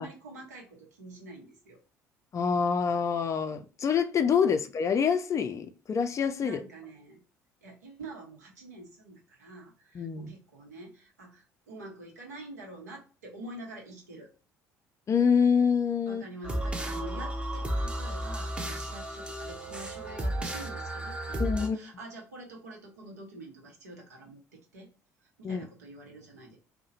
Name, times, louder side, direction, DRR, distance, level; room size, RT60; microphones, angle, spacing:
voice 1, 0.0-1.8 6.4-7.2 7.6-14.3 16.1-24.9 25.2-26.6, right 2 dB, 85° right, 0.7 m, -46 dB
voice 2, 2.3-6.6 9.9-10.3 15.1-16.2 21.4-21.8 25.4-25.7, left 6 dB, 35° left, 0.4 m, -26 dB
sound 1, 16.4-21.7, right 1 dB, 10° right, 0.6 m, -33 dB
2.7 x 2.1 x 2.6 m
hypercardioid pair, 55°, 9 cm